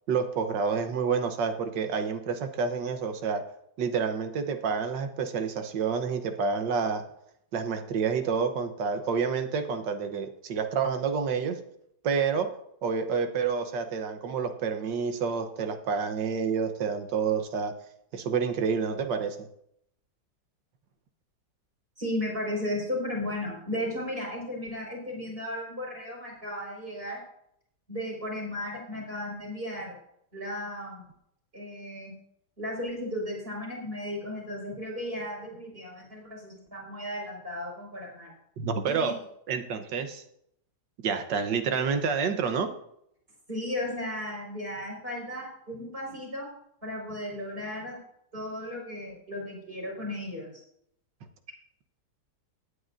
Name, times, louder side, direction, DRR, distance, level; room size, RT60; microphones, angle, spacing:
voice 1, 0.1-3.4 3.8-7.0 7.5-11.6 12.0-12.5 12.8-17.7 18.1-19.4 38.6-39.1 39.5-40.2 41.0-42.7, right 6 dB, 70° right, 8 dB, 1.6 m, -28 dB
voice 2, 22.0-27.2 27.9-30.0 30.3-31.0 31.5-32.1 32.6-38.3 38.9-39.1 43.5-46.5 46.8-48.0 48.3-50.5, left 1 dB, 30° right, -2 dB, 5.3 m, -35 dB
17.5 x 9.8 x 2.6 m, 0.73 s
omnidirectional pair, 2.0 m